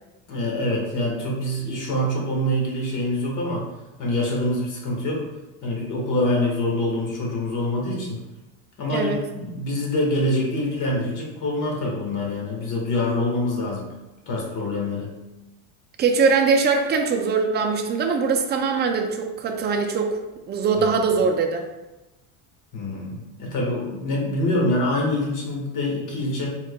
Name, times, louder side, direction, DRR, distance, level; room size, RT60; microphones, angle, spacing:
voice 1, 0.3-3.7 4.0-5.3 5.6-8.2 8.8-13.9 14.3-15.1 20.9-21.2 22.7-26.5, left 1 dB, 45° left, -2 dB, 1.3 m, -25 dB
voice 2, 16.0-20.2 20.5-21.7, right 5 dB, 25° right, 3 dB, 0.4 m, -22 dB
4.7 x 3.7 x 2.2 m, 1.0 s
supercardioid pair, 125°, 43 cm